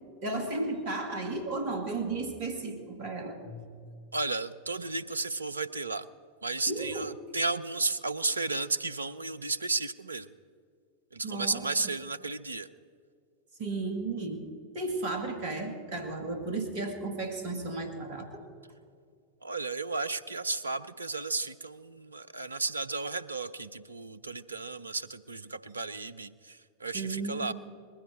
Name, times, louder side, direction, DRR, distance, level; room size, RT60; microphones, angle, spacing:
voice 1, 0.2-3.7 6.7-7.1 11.2-11.9 13.6-14.5 14.7-18.4 26.9-27.5, right 3 dB, 50° right, 5 dB, 2.1 m, -34 dB
voice 2, 4.1-6.1 6.4-10.3 11.1-12.7 19.4-27.5, right 3 dB, 80° right, 14 dB, 0.5 m, -33 dB
20.5 x 15.0 x 4.4 m, 2.2 s
figure-of-eight pair, 90°, 0 cm